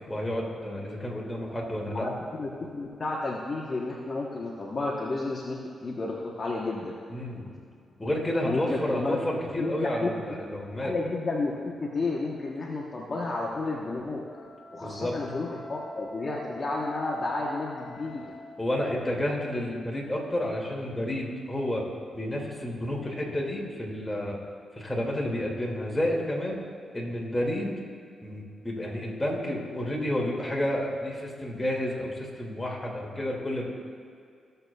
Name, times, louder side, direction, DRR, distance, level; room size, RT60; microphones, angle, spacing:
voice 1, 0.1-2.1 7.1-7.5 8.0-11.0 14.8-15.2 18.6-21.8 22.1-24.4 24.8-26.6 26.9-27.8 28.2-33.7, left 1 dB, 15° left, -3 dB, 2.1 m, -30 dB
voice 2, 2.4-6.9 8.4-9.2 9.6-10.4 10.8-14.2 14.7-18.3, left 3 dB, 45° left, -3 dB, 1.0 m, -31 dB
Wind instrument woodwind instrument, 14.1-18.7, left 2 dB, 90° right, 2.0 m, -45 dB
15.5 x 6.7 x 2.3 m, 2.3 s
cardioid pair, 70°, 0 cm